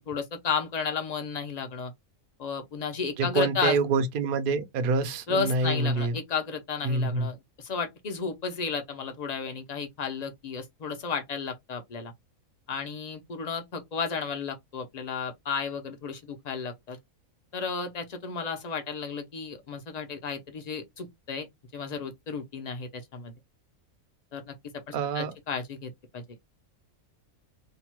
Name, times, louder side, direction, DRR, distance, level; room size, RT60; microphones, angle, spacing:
voice 1, 0.1-1.9 2.4-3.8 5.3-12.1 12.7-17.0 17.5-21.5 21.7-23.3 24.3-24.5 24.9-26.2, left 5 dB, 55° left, 0.4 m, -33 dB
voice 2, 3.2-6.1 6.8-7.3 24.9-25.3, right 3 dB, 55° right, 0.6 m, -26 dB
2.7 x 2.2 x 2.9 m
omnidirectional pair, 1.4 m